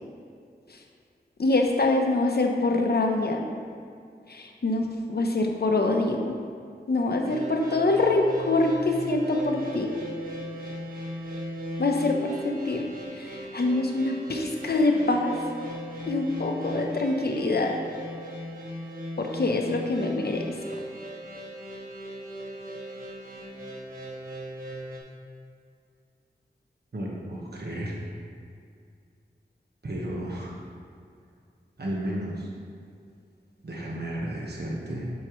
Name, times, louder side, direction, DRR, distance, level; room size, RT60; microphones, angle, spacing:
voice 1, 1.4-3.5 4.3-6.4 6.9-9.9 11.8-12.8 13.1-15.4 16.1-17.8 19.2-20.4, left 2 dB, 65° left, 2 dB, 0.9 m, -25 dB
sound 1, 7.2-25.0, equal, 55° right, 1.4 m, -38 dB
voice 2, 26.9-28.0 29.8-30.6 31.8-32.5 33.6-35.1, right 1 dB, 70° right, -3 dB, 1.3 m, -33 dB
8.5 x 6.6 x 3.1 m, 2.3 s
wide cardioid pair, 70°, 18 cm